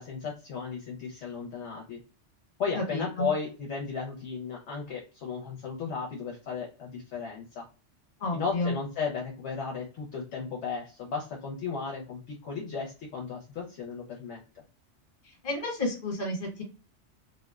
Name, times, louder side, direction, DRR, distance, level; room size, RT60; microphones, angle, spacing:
voice 1, 0.0-2.0 2.6-7.6 8.3-14.4, left 5 dB, 75° left, -1 dB, 0.9 m, -35 dB
voice 2, 2.8-3.3 8.2-8.7 15.4-16.6, left 2 dB, 50° left, 1 dB, 1.2 m, -31 dB
2.6 x 2.0 x 2.3 m, 0.34 s
omnidirectional pair, 1.2 m